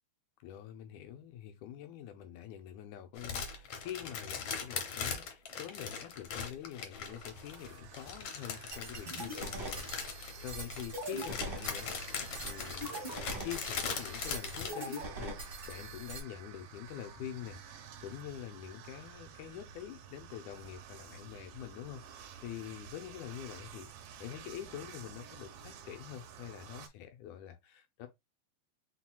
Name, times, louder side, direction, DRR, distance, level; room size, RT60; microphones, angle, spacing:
voice 1, 0.4-23.9 24.2-28.1, left 10 dB, 85° left, 2.2 m, -46 dB
sound 1, 3.2-14.7, left 6 dB, 65° left, 1.5 m, -40 dB
sound 2, 7.1-26.9, right 8 dB, 90° right, 1.3 m, -52 dB
sound 3, 8.7-16.2, right 1 dB, 35° right, 0.9 m, -42 dB
4.4 x 4.0 x 2.3 m
omnidirectional pair, 3.4 m